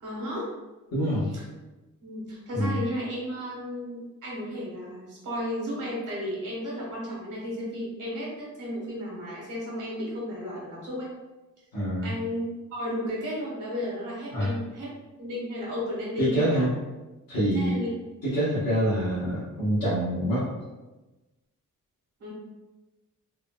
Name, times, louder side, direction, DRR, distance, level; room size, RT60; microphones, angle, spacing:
voice 1, 0.0-0.5 1.3-1.4 2.0-11.1 12.0-12.4 12.7-14.9 15.2-16.7 17.5-17.9 22.2-22.3, equal, 65° right, -5 dB, 1.2 m, -33 dB
voice 2, 0.9-1.3 2.5-2.7 11.7-12.1 14.3-14.5 16.2-16.7 17.3-17.7 18.2-20.5, equal, 90° left, -11 dB, 1.2 m, -25 dB
3.6 x 2.2 x 2.2 m, 1.1 s
wide cardioid pair, 170°, 33 cm